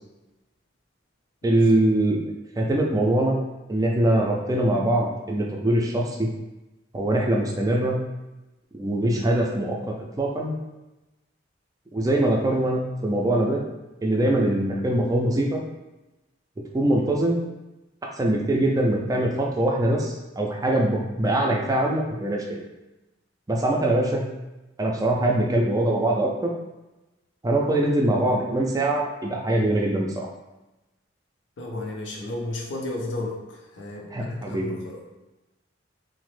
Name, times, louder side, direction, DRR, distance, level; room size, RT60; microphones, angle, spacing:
voice 1, 1.4-2.2 2.6-3.3 3.7-6.3 6.9-8.0 8.7-9.8 10.2-10.5 11.9-13.6 14.0-15.6 16.7-17.4 18.2-22.6 23.5-24.3 24.8-26.5 27.4-30.3 34.1-34.7, right 1 dB, 20° right, -1 dB, 0.4 m, -23 dB
voice 2, 31.6-33.4 33.7-35.0, left 2 dB, 75° left, -1 dB, 0.6 m, -33 dB
3.0 x 2.0 x 3.1 m, 1.0 s
head